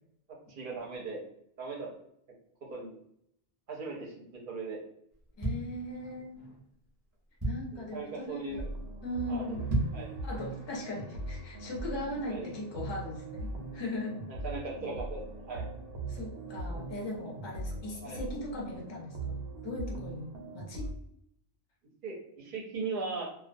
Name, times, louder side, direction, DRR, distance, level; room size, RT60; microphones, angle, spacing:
voice 1, 0.5-1.2 1.6-1.9 2.7-2.9 3.7-4.1 4.5-4.8 7.7-8.7 9.3-9.4 9.9-10.1 12.3-12.5 14.3-15.7 18.0-18.2 22.0-23.2, right 4 dB, 55° right, -2 dB, 0.7 m, -38 dB
sound 1, 5.1-6.4 6.9-7.0 7.1-7.9 8.4-8.6 8.9-9.0 9.5-10.1 10.6-10.7, right 1 dB, 20° right, 0.6 m, -33 dB
voice 2, 5.4-6.6 7.4-8.7 9.0-9.7 10.2-14.2 16.1-19.4 19.6-20.9, left 1 dB, 35° left, -1 dB, 0.4 m, -39 dB
sound 2, 8.5-20.9, right 2 dB, 85° right, 0.9 m, -40 dB
2.3 x 2.2 x 2.5 m, 0.73 s
omnidirectional pair, 1.2 m